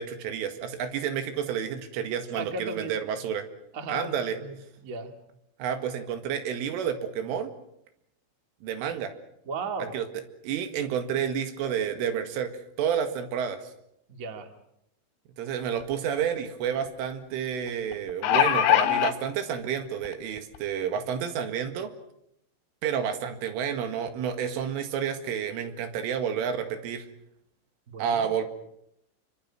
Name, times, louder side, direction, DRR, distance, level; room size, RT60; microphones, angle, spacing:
voice 1, 0.0-3.5 3.9-4.4 5.6-7.5 8.6-9.1 9.9-10.1 10.4-12.5 12.8-13.6 15.4-21.9 22.8-27.1 28.0-28.5, right 8 dB, 90° right, 8 dB, 4.5 m, -30 dB
voice 2, 2.3-2.9 3.7-4.1 4.4-5.1 9.4-9.9 14.1-14.5 27.9-28.3, right 3 dB, 35° right, 6 dB, 1.2 m, -35 dB
sound 1, 15.8-15.9 16.2-16.3 17.9-19.1 20.0-20.1 20.5-20.6, left 12 dB, 75° left, 3.1 m, -21 dB
28.0 x 24.5 x 6.0 m, 0.77 s
omnidirectional pair, 5.6 m